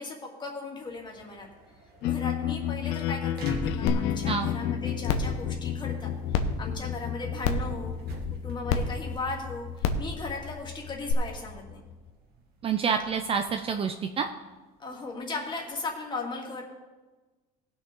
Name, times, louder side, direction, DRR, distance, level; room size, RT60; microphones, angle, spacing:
voice 1, 0.0-1.5 2.0-7.9 8.4-11.8 14.8-16.6, left 3 dB, 25° left, 0 dB, 2.3 m, -37 dB
sound 1, 0.7-16.1, right 2 dB, 55° right, 2.0 m, -47 dB
sound 2, 2.0-12.1, left 10 dB, 60° left, 0.6 m, -32 dB
sound 3, 3.9-4.0 4.4-4.5 5.0-5.3 6.3-6.4 7.4-7.7 8.7-8.8 9.8-10.0 11.1-11.2, left 6 dB, 85° left, 1.0 m, -25 dB
voice 2, 12.6-14.3, right 6 dB, 30° right, 6 dB, 0.6 m, -28 dB
18.0 x 6.4 x 3.8 m, 1.2 s
cardioid pair, 125°, 19 cm